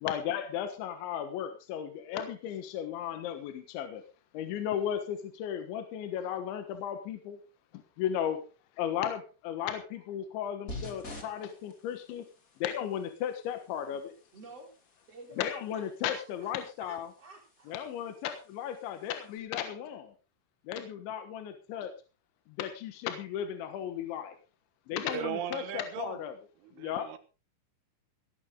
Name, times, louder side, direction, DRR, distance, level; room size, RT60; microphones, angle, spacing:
voice 1, 0.0-4.0 4.3-7.4 8.0-8.4 8.8-12.3 12.6-14.1 15.4-17.1 17.7-20.1 20.7-21.9 22.6-24.4 24.9-26.3 26.8-27.1, left 9 dB, 70° left, 7 dB, 3.5 m, -35 dB
sound 1, 10.7-19.4, left 2 dB, 30° left, 1.6 m, -50 dB
voice 2, 14.3-14.7 15.1-16.5 16.8-17.7, right 2 dB, 35° right, 1 dB, 4.4 m, -51 dB
voice 3, 25.0-26.2 26.6-27.2, right 9 dB, 75° right, 10 dB, 3.8 m, -38 dB
17.5 x 12.0 x 3.8 m, 0.32 s
omnidirectional pair, 5.8 m